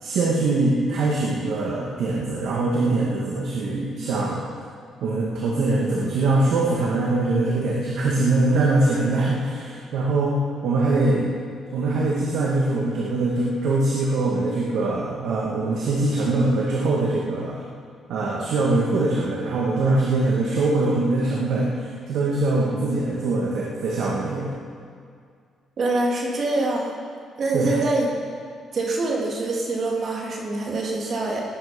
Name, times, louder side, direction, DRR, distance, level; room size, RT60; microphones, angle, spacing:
voice 1, 0.0-4.4 5.0-10.4 10.6-11.3 11.7-17.6 18.1-24.5 27.5-27.8, right 2 dB, 75° right, -3 dB, 2.2 m, -23 dB
voice 2, 25.8-26.9 27.4-28.1 28.7-31.4, right 2 dB, 50° right, -2 dB, 3.2 m, -24 dB
19.0 x 9.6 x 5.4 m, 2.2 s
cardioid pair, 90°, 0 cm